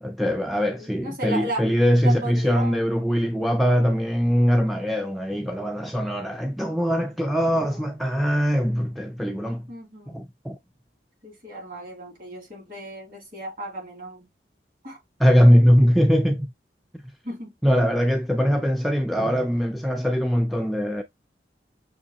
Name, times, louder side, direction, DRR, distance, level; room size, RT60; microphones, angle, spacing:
voice 1, 0.0-9.7 10.1-10.6 15.2-16.5 17.6-21.0, equal, ahead, 0.3 m, -21 dB
voice 2, 0.7-1.7 2.0-2.8 7.5-7.8 9.7-10.3 11.2-14.3 14.8-15.0 17.2-17.5, right 1 dB, 50° right, 2.6 m, -35 dB
6.2 x 2.8 x 2.8 m
head